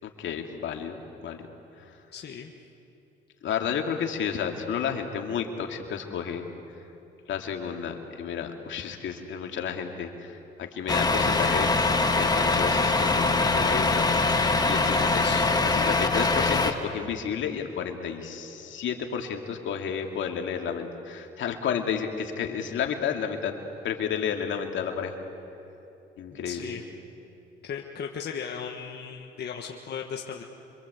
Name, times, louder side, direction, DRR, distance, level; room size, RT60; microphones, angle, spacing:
voice 1, 0.0-1.4 1.8-1.9 3.4-6.5 7.3-11.7 12.0-14.3 14.7-15.2 15.6-23.5 23.8-25.2 26.2-26.8, left 7 dB, 75° left, 3 dB, 2.5 m, -31 dB
voice 2, 2.1-2.5 15.0-15.5 26.4-26.8 27.6-30.4, left 7 dB, 55° left, 1 dB, 1.6 m, -36 dB
Truck, 10.9-16.7, left 3 dB, 20° left, 2.0 m, -23 dB
27.0 x 25.0 x 8.2 m, 2.9 s
cardioid pair, 90°, 20 cm